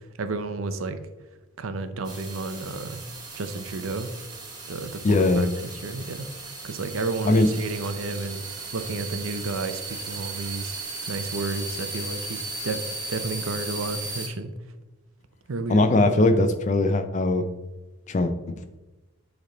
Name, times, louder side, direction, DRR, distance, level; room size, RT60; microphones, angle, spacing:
voice 1, 0.2-1.0 1.6-3.0 3.3-4.1 4.7-6.3 6.6-10.8 11.1-14.5 15.5-15.9, right 3 dB, 80° right, 9 dB, 0.6 m, -32 dB
sound 1, 2.0-14.3, right 3 dB, 20° right, 0.9 m, -36 dB
voice 2, 5.0-5.5 7.2-7.5 15.7-17.5 18.1-18.6, left 2 dB, 35° left, 9 dB, 0.4 m, -20 dB
8.0 x 3.4 x 3.8 m, 1.1 s
head